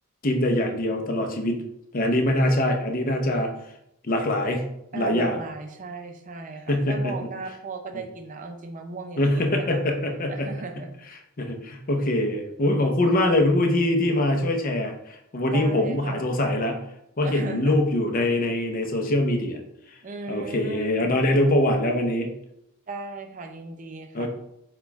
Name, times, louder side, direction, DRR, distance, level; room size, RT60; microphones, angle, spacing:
voice 1, 0.2-1.6 1.9-3.5 4.0-4.6 4.9-5.4 6.7-7.3 9.2-10.5 11.4-16.8 17.2-19.6 20.3-22.3 24.1-24.3, left 1 dB, 40° left, 3 dB, 0.6 m, -23 dB
voice 2, 4.9-9.8 10.3-10.9 15.5-16.2 17.2-17.8 20.0-21.1 22.9-24.3, right 3 dB, 35° right, 5 dB, 0.5 m, -37 dB
4.3 x 2.3 x 4.5 m, 0.80 s
head